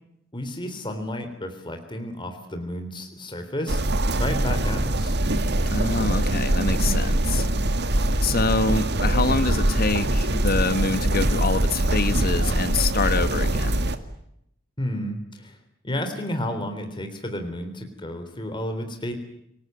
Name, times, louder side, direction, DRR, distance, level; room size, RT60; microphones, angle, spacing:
voice 1, 0.3-3.8 4.2-5.2 14.8-15.6 15.8-19.1, left 1 dB, 25° left, 6 dB, 3.5 m, -31 dB
sound 1, 3.7-14.0, right 1 dB, 55° right, 2.0 m, -23 dB
voice 2, 5.7-7.5 8.2-13.8, left 3 dB, 50° left, 12 dB, 1.4 m, -26 dB
28.0 x 18.0 x 9.4 m, 0.77 s
head